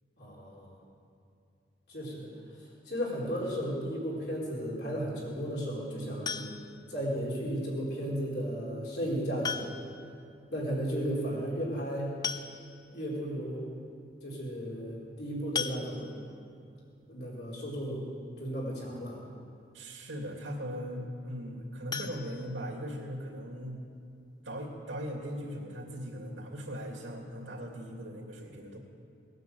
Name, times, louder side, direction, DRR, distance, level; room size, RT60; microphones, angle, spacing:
voice 1, 0.2-0.8 1.9-2.3 2.9-6.5 6.9-9.8 10.5-12.1 12.9-13.7 14.2-16.1 17.1-18.1 18.4-19.2, equal, 60° left, -5 dB, 4.3 m, -34 dB
sound 1, 6.3-6.9 8.4-8.5 9.4-10.1 10.4-10.5 10.7-10.8 11.8-11.9 12.2-13.0 13.5-13.6 13.9-14.1 15.6-16.4 21.9-23.1 23.5-23.6 24.0-24.1 24.4-24.5, left 6 dB, 20° left, 0.4 m, -37 dB
voice 2, 19.7-23.8 24.4-28.8, equal, 85° right, 0 dB, 2.7 m, -39 dB
19.0 x 9.5 x 7.9 m, 2.5 s
head